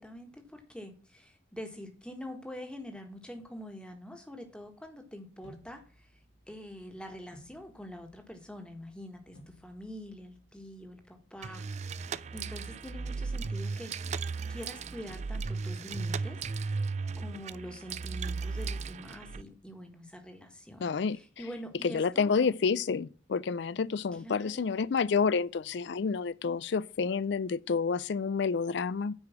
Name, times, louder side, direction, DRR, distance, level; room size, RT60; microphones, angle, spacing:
voice 1, 0.0-6.2 6.5-13.9 14.5-16.8 17.1-22.5 24.1-24.8, equal, 5° left, 1.5 m, -45 dB
sound 1, 5.4-11.5, equal, 85° left, 3.7 m, -60 dB
sound 2, 11.4-19.4, right 4 dB, 35° right, 0.4 m, -36 dB
voice 2, 20.8-21.2 21.9-29.1, left 5 dB, 60° left, 0.4 m, -29 dB
9.4 x 5.0 x 7.2 m
head